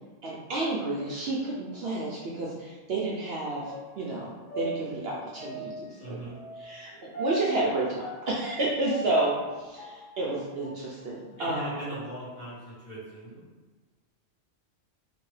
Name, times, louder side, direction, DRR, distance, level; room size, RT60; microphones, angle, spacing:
voice 1, 0.2-6.2 6.6-11.8, right 2 dB, 65° right, -5 dB, 0.7 m, -31 dB
sound 1, 3.6-10.8 11.3-12.6 13.0-13.1, right 1 dB, 65° left, 1.6 m, -40 dB
voice 2, 6.0-6.4 11.4-13.4, right 1 dB, 40° left, -10 dB, 1.3 m, -39 dB
2.9 x 2.7 x 3.1 m, 1.3 s
omnidirectional pair, 1.3 m